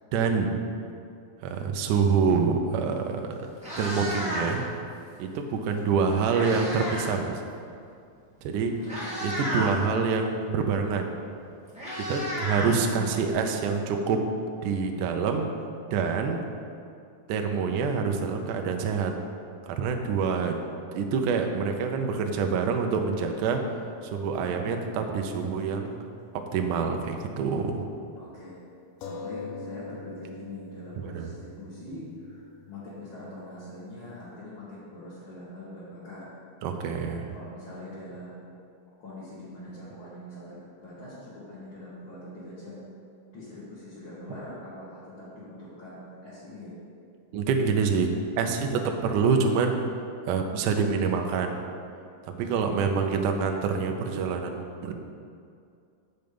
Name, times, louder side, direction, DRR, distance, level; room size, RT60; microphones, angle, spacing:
voice 1, 0.1-0.6 1.4-3.5 3.8-4.6 5.2-7.4 8.4-8.7 9.2-11.1 12.1-14.2 14.6-15.5 15.9-16.4 17.3-19.1 19.7-20.6 20.9-23.6 24.0-26.0 26.5-27.8 31.0-31.3 36.6-37.2 47.3-49.8 50.3-51.6 52.3-54.9, right 5 dB, 80° right, 4 dB, 1.9 m, -26 dB
Meow, 3.0-3.1 3.5-4.7 5.8-7.1 7.4-7.7 8.4-8.5 8.8-9.8 11.1-11.2 11.4-13.3, equal, 5° right, 1.0 m, -33 dB
voice 2, 8.6-9.8 13.0-13.1 28.1-28.6 29.0-36.3 37.0-38.5 39.0-42.9 43.3-46.8 52.5-53.5, left 1 dB, 40° left, -13 dB, 2.2 m, -43 dB
sound 1, 21.5-25.4 25.7-25.8 29.0-34.2, left 3 dB, 75° left, 2.0 m, -45 dB
7.8 x 6.8 x 5.2 m, 2.4 s
omnidirectional pair, 4.3 m